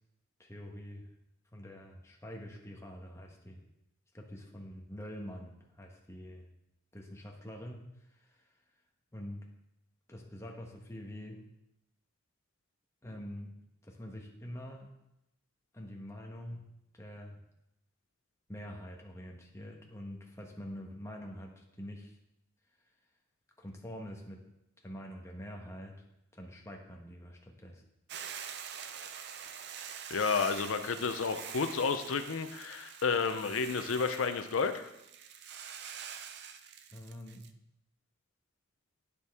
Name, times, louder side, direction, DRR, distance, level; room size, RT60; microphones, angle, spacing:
voice 1, 0.4-1.1 1.5-3.6 4.1-6.5 6.9-8.6 9.1-9.4 10.1-11.4 13.0-13.5 13.8-14.9 15.7-17.4 18.5-22.2 23.6-24.4 24.8-26.0 26.3-27.8 36.9-37.5, equal, 15° left, 0 dB, 1.1 m, -45 dB
Hiss / Boiling, 28.1-37.5, right 8 dB, 55° right, 0.5 m, -45 dB
voice 2, 30.1-34.9, left 5 dB, 80° left, 8 dB, 0.6 m, -31 dB
9.9 x 6.9 x 3.5 m, 0.86 s
head